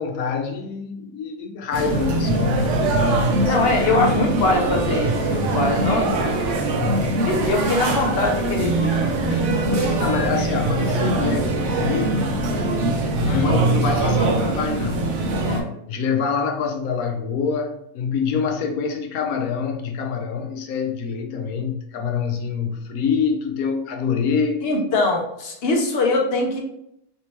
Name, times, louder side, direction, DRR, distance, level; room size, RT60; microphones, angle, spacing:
voice 1, 0.0-4.0 6.6-7.1 10.0-12.3 13.2-15.2 15.4-24.6, left 6 dB, 75° left, 4 dB, 1.1 m, -26 dB
sound 1, 1.7-15.6, right 2 dB, 65° right, 0.9 m, -22 dB
voice 2, 3.4-6.1 7.2-9.8 13.3-13.5 24.6-26.6, left 2 dB, 55° left, 1 dB, 0.8 m, -22 dB
3.4 x 2.9 x 3.1 m, 0.77 s
omnidirectional pair, 1.5 m